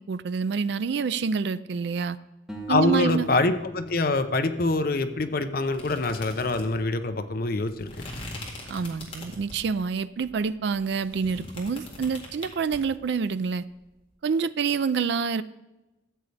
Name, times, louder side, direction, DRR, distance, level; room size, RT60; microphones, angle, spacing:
voice 1, 0.1-2.2 2.7-3.3 8.7-13.7 14.2-15.4, right 5 dB, 55° right, 14 dB, 0.3 m, -27 dB
sound 1, 2.5-5.7, right 2 dB, 5° right, 1.2 m, -44 dB
voice 2, 2.7-7.9, left 2 dB, 45° left, 9 dB, 0.6 m, -25 dB
sound 2, 5.7-9.7 10.2-12.8, left 2 dB, 25° left, 2.0 m, -41 dB
13.5 x 8.3 x 3.3 m, 1.0 s
head